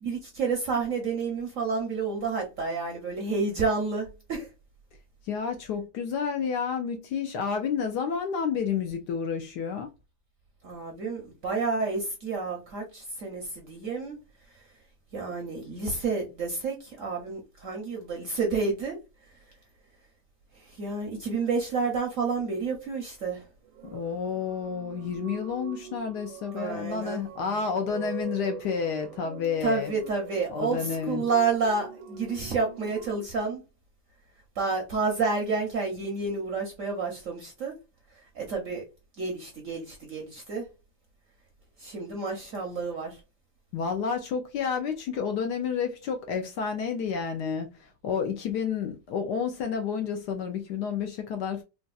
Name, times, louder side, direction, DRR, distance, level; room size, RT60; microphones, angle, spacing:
voice 1, 0.0-4.5 10.6-14.2 14.5-14.6 15.1-19.0 20.5-23.5 26.5-27.2 29.6-33.6 34.6-37.7 38.3-38.8 39.2-40.7 41.8-43.2, right 4 dB, 60° right, 0.9 m, -30 dB
voice 2, 5.3-9.9 23.9-29.9 30.5-31.3 43.7-51.6, left 6 dB, 70° left, 1.0 m, -30 dB
sound 1, 23.6-33.2, right 9 dB, 80° right, 1.4 m, -43 dB
3.9 x 2.3 x 2.3 m
omnidirectional pair, 2.1 m